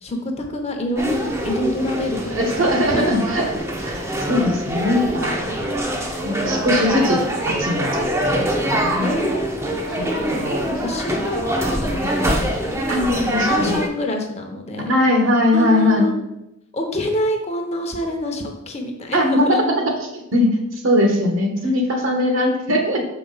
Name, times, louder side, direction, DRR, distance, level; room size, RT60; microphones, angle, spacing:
voice 1, 0.0-3.1 9.0-14.9 15.5-16.2 16.7-19.6, left 1 dB, 30° left, 3 dB, 0.8 m, -27 dB
sound 1, 1.0-13.9, right 1 dB, 15° right, 0.6 m, -24 dB
voice 2, 2.3-3.5 3.8-5.6 6.2-9.1 9.9-10.6 12.9-13.8 14.9-16.1 19.1-23.0, left 1 dB, 70° right, 2 dB, 1.3 m, -20 dB
6.5 x 4.8 x 4.0 m, 0.86 s
head